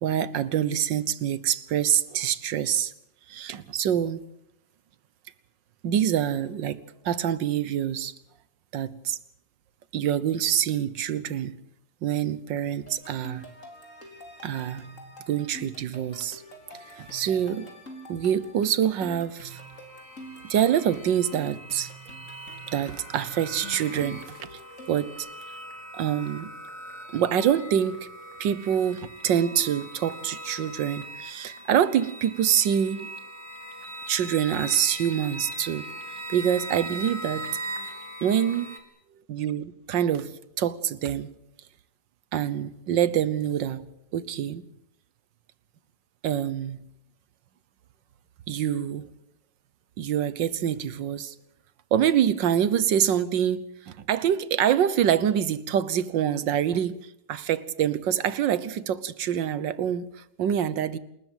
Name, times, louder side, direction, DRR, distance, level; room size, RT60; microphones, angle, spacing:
voice 1, 0.0-2.9 3.3-4.2 5.8-8.1 8.7-9.2 9.9-11.5 12.0-13.4 14.4-14.8 15.3-16.4 16.9-17.7 18.1-19.6 20.4-21.9 22.7-24.2 24.5-24.6 24.9-25.3 25.9-26.5 27.1-28.1 28.4-33.1 34.1-35.9 36.3-37.5 38.2-38.7 39.3-41.3 42.3-43.8 44.1-44.6 46.2-46.8 48.5-49.1 50.0-51.3 51.9-61.0, right 9 dB, 80° right, 1.7 m, -26 dB
sound 1, 12.9-25.2, right 1 dB, 40° left, 4.3 m, -46 dB
sound 2, 19.5-38.8, right 1 dB, 55° right, 3.6 m, -40 dB
28.0 x 13.5 x 9.1 m
omnidirectional pair, 2.0 m